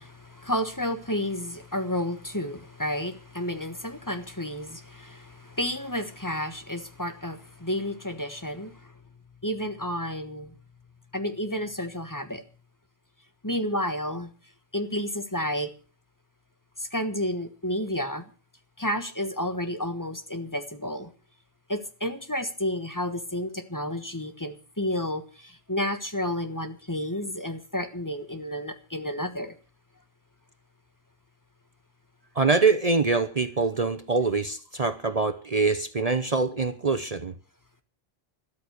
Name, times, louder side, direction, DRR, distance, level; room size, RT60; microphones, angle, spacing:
voice 1, 0.0-8.9 9.4-10.5 11.1-12.4 13.4-14.3 14.7-15.7 16.8-18.2 18.8-21.1 21.7-29.5, left 1 dB, 20° left, 8 dB, 1.4 m, -31 dB
voice 2, 32.4-37.3, right 4 dB, 40° right, 11 dB, 0.9 m, -24 dB
13.0 x 13.0 x 6.5 m, 0.37 s
omnidirectional pair, 1.1 m